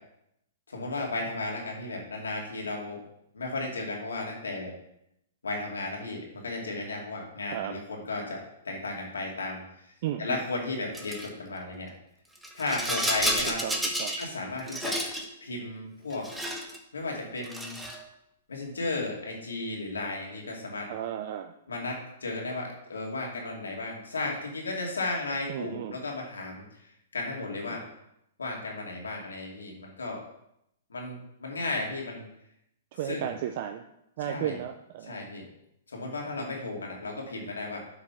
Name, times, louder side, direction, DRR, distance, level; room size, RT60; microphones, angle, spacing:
voice 1, 0.7-3.0 3.3-4.7 5.4-9.9 10.2-11.9 12.5-13.6 14.2-15.0 15.4-16.3 16.9-17.8 18.5-20.9 21.7-26.6 27.1-27.9 28.4-30.2 30.9-32.2 33.1-33.3 34.2-34.6 35.1-35.5 35.9-37.8, left 2 dB, 90° left, -1 dB, 2.6 m, -34 dB
voice 2, 10.0-10.4 13.5-14.2 20.9-21.5 25.5-26.0 27.7-27.8 32.9-33.8 34.2-35.2, right 11 dB, 50° right, 6 dB, 0.6 m, -34 dB
Rattle, 10.9-11.3 12.3-14.3 14.6-15.3 16.1-16.8 17.4-18.0, right 1 dB, 5° right, 1.2 m, -31 dB
8.3 x 5.1 x 5.8 m, 0.79 s
hypercardioid pair, 125°, 0 cm